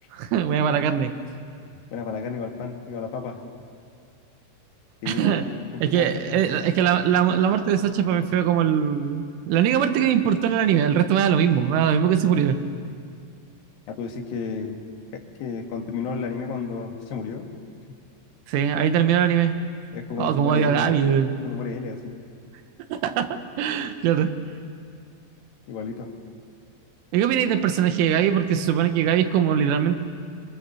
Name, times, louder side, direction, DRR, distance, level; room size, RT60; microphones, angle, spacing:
voice 1, 0.1-1.1 5.1-5.5 5.8-12.6 18.5-19.6 20.2-21.4 22.9-24.3 27.1-30.0, right 9 dB, 90° right, 8 dB, 3.7 m, -21 dB
voice 2, 1.9-3.4 5.0-5.4 5.7-6.4 13.9-14.8 15.1-17.5 17.9-18.0 19.9-20.9 21.4-22.2 25.7-26.1, left 5 dB, 55° left, 2 dB, 3.2 m, -32 dB
27.0 x 23.5 x 7.0 m, 2.2 s
omnidirectional pair, 5.5 m